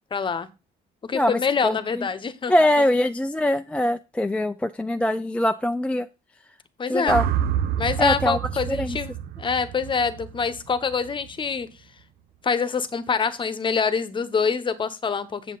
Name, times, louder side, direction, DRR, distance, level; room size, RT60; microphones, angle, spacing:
voice 1, 0.1-0.5 1.0-2.5 6.8-7.2 7.8-11.7 12.4-15.6, left 5 dB, 30° left, 14 dB, 0.9 m, -25 dB
voice 2, 1.1-2.1 2.5-6.1 6.9-7.3 8.0-8.4 8.7-9.0, left 1 dB, 5° left, 8 dB, 0.4 m, -23 dB
sound 1, 7.1-11.3, right 9 dB, 65° right, 0.7 m, -28 dB
7.5 x 7.4 x 3.9 m, 0.28 s
cardioid pair, 110°, 17 cm